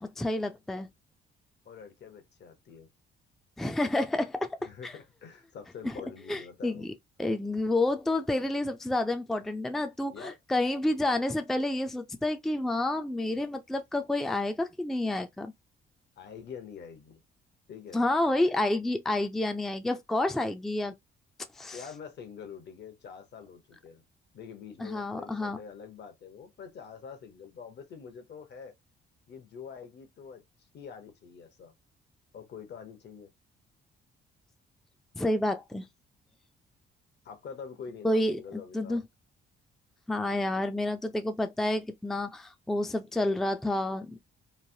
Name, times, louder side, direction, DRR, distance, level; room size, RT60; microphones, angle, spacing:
voice 1, 0.0-0.9 3.6-4.9 5.8-6.0 6.3-6.9 7.2-15.5 17.9-20.9 21.6-21.8 24.8-25.6 35.1-35.8 38.0-39.0 40.1-44.2, left 1 dB, ahead, 0.4 m, -29 dB
voice 2, 1.6-2.9 4.6-6.9 10.1-10.4 16.2-17.2 17.7-18.0 21.7-24.0 24.3-28.7 29.3-30.4 30.7-31.7 32.3-33.3 37.2-39.0, left 6 dB, 60° left, 0.9 m, -45 dB
3.1 x 2.1 x 2.6 m
cardioid pair, 90°, 20 cm